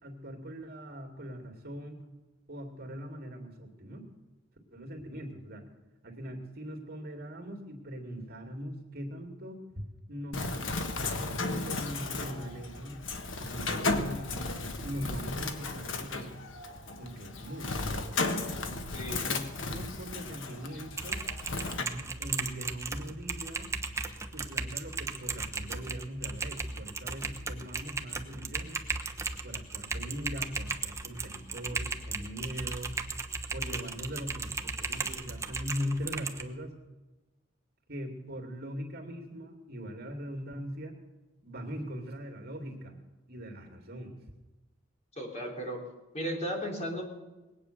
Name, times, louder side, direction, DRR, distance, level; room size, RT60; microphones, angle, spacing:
voice 1, 0.0-2.0 2.5-4.1 4.7-5.7 6.0-13.0 13.4-16.3 17.0-18.1 19.2-21.2 21.8-23.7 24.3-28.8 29.4-33.0 33.5-36.8 37.9-41.0 41.4-43.0 43.3-44.1, equal, 55° right, 2 dB, 2.5 m, -41 dB
Bird, 10.3-21.8, left 3 dB, 85° left, 1.4 m, -35 dB
voice 2, 18.9-19.3 45.2-45.8 46.1-47.0, equal, 35° left, 1 dB, 3.3 m, -35 dB
Typing, 20.9-36.4, right 3 dB, 15° right, 1.0 m, -36 dB
21.0 x 8.9 x 6.7 m, 1.1 s
head